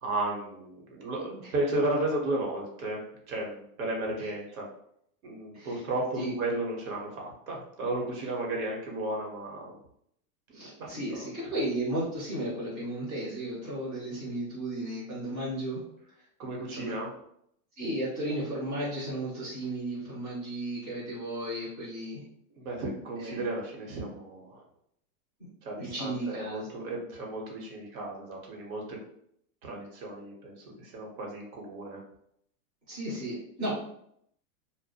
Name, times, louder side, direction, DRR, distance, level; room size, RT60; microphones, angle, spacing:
voice 1, 0.0-3.0 3.3-4.6 5.2-9.8 10.5-11.3 16.4-17.1 22.5-24.6 25.6-29.0 29.6-32.0, right 2 dB, 65° right, -1 dB, 0.9 m, -34 dB
voice 2, 10.5-15.8 16.7-16.9 17.8-22.2 23.2-23.4 25.8-26.7 32.9-33.7, right 1 dB, 10° right, -11 dB, 0.4 m, -34 dB
2.3 x 2.1 x 2.7 m, 0.70 s
supercardioid pair, 165°, 46 cm